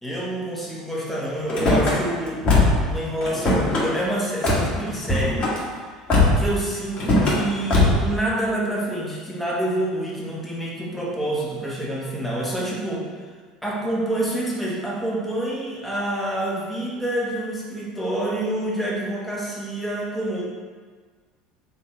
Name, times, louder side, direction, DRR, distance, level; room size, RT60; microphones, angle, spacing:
voice 1, 0.0-2.5 2.9-5.5 6.4-13.1 13.6-20.4, right 1 dB, ahead, -5 dB, 1.2 m, -27 dB
Car / Slam, 1.5-1.9 2.4-2.9 3.2-3.8 4.4-4.7 5.0-5.6 6.1-6.5 7.0-7.4 7.7-8.1, left 2 dB, 30° left, 1.3 m, -19 dB
3.8 x 2.7 x 4.7 m, 1.5 s
figure-of-eight pair, 70°, 3 cm